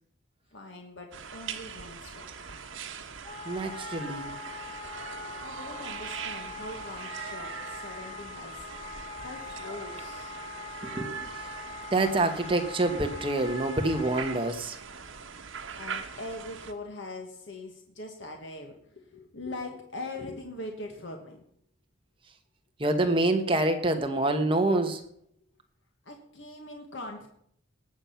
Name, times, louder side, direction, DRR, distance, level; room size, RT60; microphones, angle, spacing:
voice 1, 0.5-2.3 5.4-8.7 9.2-10.3 15.7-21.4 26.0-27.3, left 2 dB, 65° left, 1.5 m, -42 dB
sound 1, 1.1-16.7, right 6 dB, 75° right, 1.3 m, -41 dB
Wind instrument woodwind instrument, 3.2-14.6, left 4 dB, 30° left, 0.6 m, -42 dB
voice 2, 3.4-4.4 10.8-11.5 11.9-14.8 22.8-25.0, right 2 dB, 25° right, 1.2 m, -27 dB
19.0 x 7.4 x 5.8 m
head